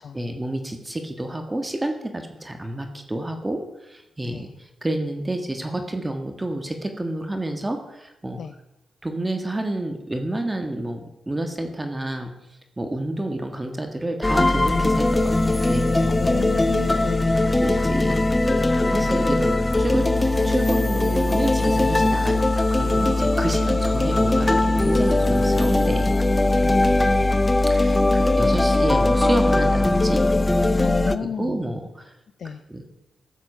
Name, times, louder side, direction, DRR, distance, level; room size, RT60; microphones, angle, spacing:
voice 1, 0.1-8.4 9.0-11.0 11.3-12.3 12.8-16.3 17.6-18.6 18.9-26.1 27.7-30.2 31.2-32.1 32.7-32.8, right 1 dB, 20° right, 5 dB, 1.6 m, -29 dB
voice 2, 4.2-4.5 8.4-8.5 16.1-17.6 19.0-19.1 26.6-27.1 30.8-31.7 32.4-32.6, left 7 dB, 70° left, 10 dB, 0.5 m, -33 dB
sound 1, 14.2-31.2, left 2 dB, 20° left, 0.7 m, -20 dB
13.5 x 7.3 x 5.6 m, 0.92 s
cardioid pair, 60°, 0 cm